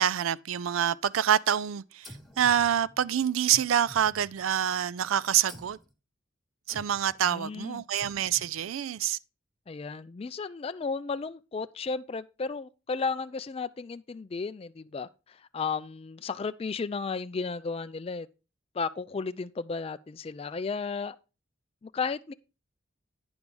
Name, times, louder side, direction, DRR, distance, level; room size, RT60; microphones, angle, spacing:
voice 1, 0.0-5.8 6.7-9.2, right 9 dB, 85° right, 0.4 m, -26 dB
sound 1, 2.0-3.1 3.5-4.8 5.5-5.9 6.7-7.2 8.0-8.6, equal, ahead, 1.0 m, -49 dB
voice 2, 7.2-7.8 9.7-18.3 18.7-21.2 21.8-22.3, left 4 dB, 30° left, 0.3 m, -34 dB
9.6 x 4.7 x 5.1 m
head